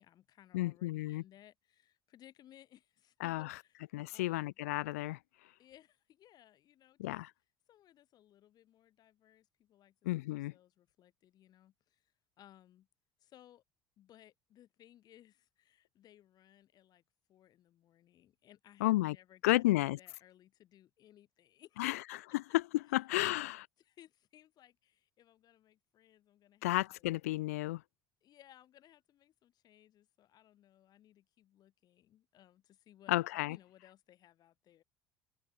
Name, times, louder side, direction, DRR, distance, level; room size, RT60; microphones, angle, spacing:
voice 1, 0.0-3.8 4.1-4.5 5.6-7.1 7.7-12.9 13.2-13.6 14.0-17.0 17.3-22.3 23.3-23.5 23.8-27.1 28.2-34.8, left 12 dB, 60° left, 6.1 m, -62 dB
voice 2, 0.5-1.2 3.2-3.5 3.9-5.2 7.0-7.3 10.0-10.5 18.8-19.2 19.4-20.0 21.8-22.6 22.9-23.6 26.6-27.8 33.1-33.6, left 18 dB, 85° left, 0.8 m, -32 dB
hypercardioid pair, 65°, 8 cm